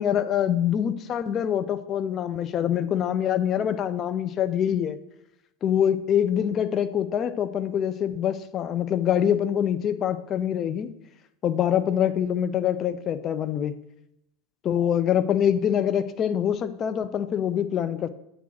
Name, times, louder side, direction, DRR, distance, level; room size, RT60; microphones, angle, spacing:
voice 1, 0.0-5.0 5.6-10.9 11.4-13.8 14.6-18.1, left 9 dB, 40° left, 12 dB, 0.6 m, -25 dB
8.3 x 3.8 x 6.0 m, 0.82 s
hypercardioid pair, 90°, 0 cm